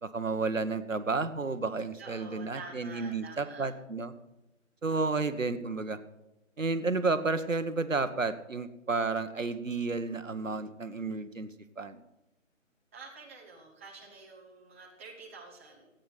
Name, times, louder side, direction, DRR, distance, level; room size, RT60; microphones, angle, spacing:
voice 1, 0.0-4.1 4.8-6.0 6.6-11.5 11.8-12.0, right 3 dB, 70° right, 10 dB, 1.2 m, -31 dB
voice 2, 2.0-3.7 4.9-5.3 12.9-15.9, right 4 dB, 10° right, -3 dB, 1.1 m, -48 dB
14.5 x 9.2 x 5.8 m, 0.93 s
figure-of-eight pair, 155°, 40 cm